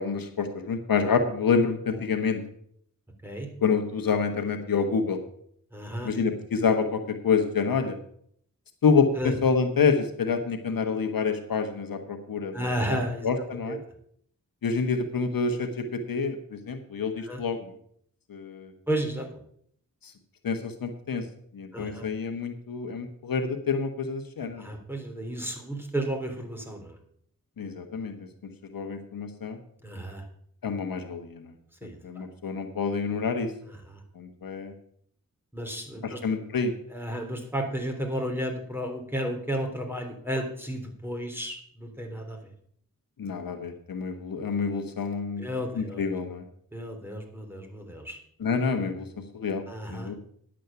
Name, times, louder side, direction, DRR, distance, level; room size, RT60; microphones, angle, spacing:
voice 1, 0.0-2.4 3.6-5.2 6.0-8.0 8.8-12.7 13.2-13.8 14.6-15.7 16.1-17.7 18.3-18.7 20.0-20.1 20.4-21.2 21.5-24.7 27.6-28.1 28.7-29.6 30.6-31.5 31.8-33.5 34.1-34.7 36.0-36.7 43.2-46.4 48.4-49.1 49.3-49.6 49.9-50.1, left 5 dB, 80° left, 7 dB, 1.3 m, -27 dB
voice 2, 5.7-6.1 9.2-9.3 12.5-13.3 13.7-13.8 17.2-17.4 18.9-19.3 21.7-22.0 24.6-27.0 29.8-30.2 31.8-32.3 33.7-34.0 35.5-36.2 36.9-42.4 45.4-46.0 46.7-48.2 49.7-50.1, right 1 dB, 5° right, 3 dB, 3.5 m, -33 dB
10.5 x 7.6 x 6.9 m, 0.65 s
cardioid pair, 40°, 34 cm